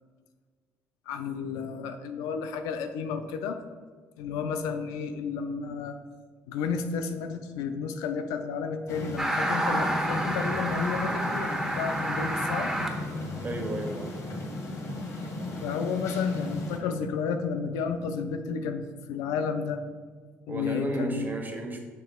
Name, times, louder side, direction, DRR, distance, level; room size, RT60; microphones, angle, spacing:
voice 1, 1.1-3.6 4.2-6.0 6.5-12.7 15.6-19.8 20.5-21.3, left 6 dB, 75° left, 8 dB, 0.5 m, -32 dB
sound 1, 8.9-16.8, left 2 dB, 55° left, 1.4 m, -35 dB
sound 2, 9.2-12.9, right 1 dB, 5° right, 1.1 m, -29 dB
voice 2, 13.4-14.1 20.5-21.8, right 1 dB, 30° right, 3 dB, 1.3 m, -32 dB
7.2 x 5.7 x 2.3 m, 1.5 s
hypercardioid pair, 55°, 6 cm